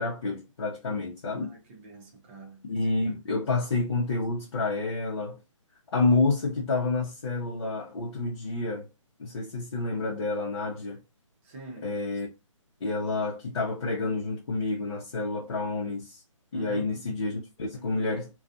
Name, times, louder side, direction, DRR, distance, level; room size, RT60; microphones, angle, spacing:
voice 1, 0.0-1.5 2.7-5.4 5.9-8.9 9.2-11.0 11.8-12.3 12.8-16.2 16.5-18.3, left 3 dB, 55° left, 0.8 m, -29 dB
voice 2, 1.4-2.6 11.4-11.9 16.5-17.2, right 3 dB, 20° right, 0.8 m, -44 dB
2.4 x 2.3 x 2.6 m
hypercardioid pair, 155°, 17 cm